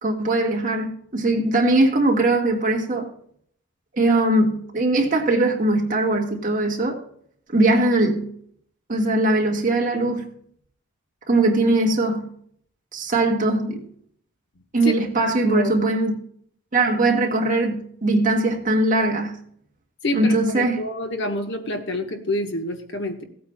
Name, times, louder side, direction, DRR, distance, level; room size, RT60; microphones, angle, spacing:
voice 1, 0.0-3.1 3.9-7.0 7.5-8.3 8.9-10.3 11.3-12.3 12.9-13.8 14.7-16.1 16.7-19.4 20.1-20.8, right 2 dB, 35° right, 1.6 m, -20 dB
voice 2, 20.0-23.2, left 1 dB, 55° left, 1.2 m, -27 dB
17.0 x 8.6 x 2.3 m
head